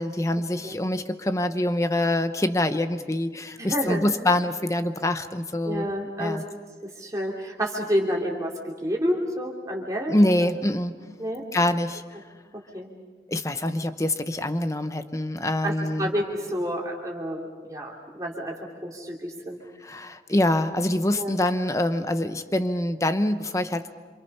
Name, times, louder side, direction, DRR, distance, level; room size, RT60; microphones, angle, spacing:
voice 1, 0.0-5.9 6.2-6.4 10.1-11.0 11.5-12.0 13.3-16.1 19.8-23.9, left 1 dB, 20° left, 9 dB, 0.9 m, -25 dB
voice 2, 3.6-4.1 5.6-6.4 6.8-10.1 11.2-11.4 12.7-12.9 15.6-19.6 21.2-21.3, equal, 20° right, -2 dB, 2.9 m, -29 dB
27.5 x 27.0 x 5.6 m, 1.4 s
head